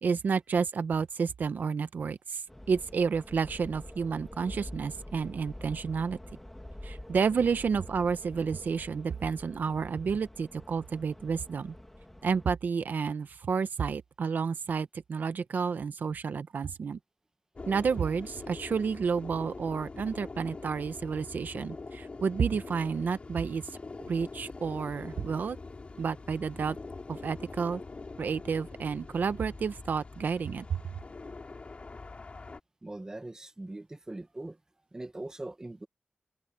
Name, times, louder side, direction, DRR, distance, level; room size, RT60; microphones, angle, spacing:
voice 1, 0.0-2.4 2.7-6.2 6.8-11.7 12.2-17.0 17.7-23.6 24.1-25.6 26.0-26.8 27.1-27.8 28.2-30.8, right 5 dB, 75° right, 0.9 m, -30 dB
sound 1, 2.5-12.5, left 1 dB, 10° left, 1.3 m, -46 dB
sound 2, 17.5-32.6, left 3 dB, 40° left, 3.2 m, -44 dB
voice 2, 32.8-34.6 34.9-35.9, right 2 dB, 20° right, 1.2 m, -41 dB
wide cardioid pair, 120°, 3 cm